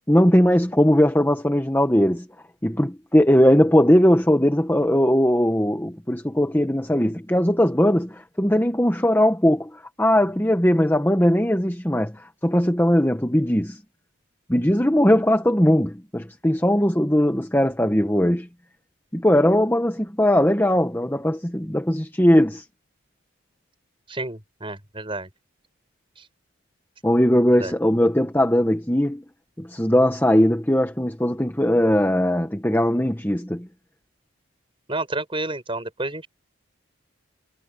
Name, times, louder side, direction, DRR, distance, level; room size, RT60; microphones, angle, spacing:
voice 1, 0.1-2.3 2.6-13.8 14.5-18.5 19.1-22.6 27.0-29.2 29.6-33.7, equal, 10° left, 1.4 m, -19 dB
voice 2, 24.1-25.3 26.2-26.3 27.5-27.7 34.9-36.3, right 2 dB, 25° right, 6.5 m, -30 dB
head